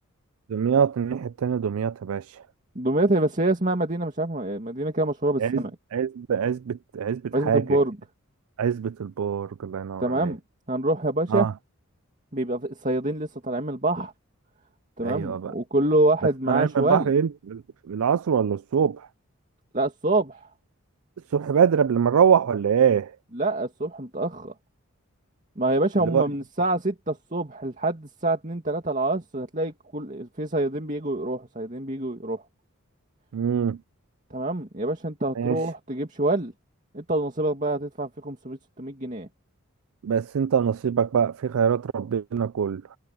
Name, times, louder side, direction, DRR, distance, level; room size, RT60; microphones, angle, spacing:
voice 1, 0.5-2.4 5.4-5.6 5.9-7.8 8.6-10.3 11.3-11.5 15.0-15.5 16.5-19.1 21.3-23.1 26.0-26.2 33.3-33.8 35.4-35.6 40.0-43.0, right 7 dB, 80° right, 0.4 m, -24 dB
voice 2, 2.8-5.7 7.3-8.0 10.0-10.4 10.7-11.5 12.3-14.1 15.0-17.1 19.7-20.5 23.3-24.5 25.6-32.4 34.3-36.5 36.9-39.3, right 2 dB, 35° right, 2.4 m, -26 dB
head